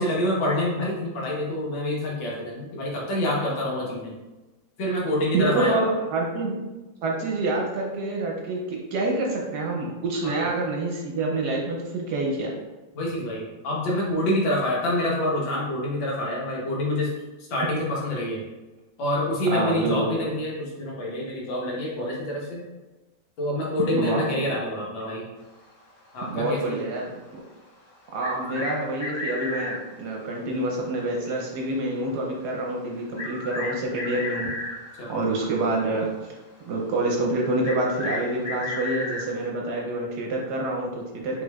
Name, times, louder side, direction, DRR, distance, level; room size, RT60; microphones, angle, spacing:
voice 1, 0.0-4.2 4.8-5.9 10.2-10.4 12.9-17.1 17.5-18.4 19.0-22.6 23.4-25.3 26.1-26.8 35.0-35.1, left 1 dB, 80° left, -4 dB, 1.8 m, -27 dB
voice 2, 5.3-6.6 7.0-12.6 19.5-20.2 23.9-24.4 26.3-27.4 28.1-34.5 35.1-36.3 36.6-41.4, right 2 dB, 65° right, -1 dB, 1.1 m, -27 dB
sound 1, 28.2-29.8 31.6-31.7 33.2-35.1 37.6-39.3, left 2 dB, 55° left, 2.1 m, -33 dB
5.2 x 3.3 x 2.3 m, 1.1 s
omnidirectional pair, 2.1 m